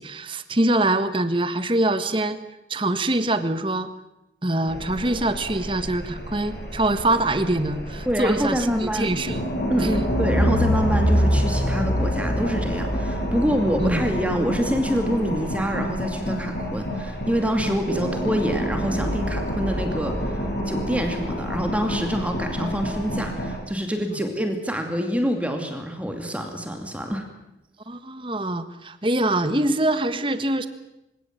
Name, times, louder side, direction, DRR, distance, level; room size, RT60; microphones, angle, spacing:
voice 1, 0.0-2.4 2.7-3.9 4.4-9.5 9.8-10.1 13.8-14.0 27.9-30.7, right 1 dB, 25° right, 11 dB, 1.5 m, -24 dB
sound 1, 4.7-23.6, equal, 55° left, 7.0 m, -27 dB
voice 2, 8.1-9.1 9.7-27.3, equal, 5° right, 4 dB, 2.5 m, -26 dB
27.0 x 17.0 x 9.1 m, 0.91 s
head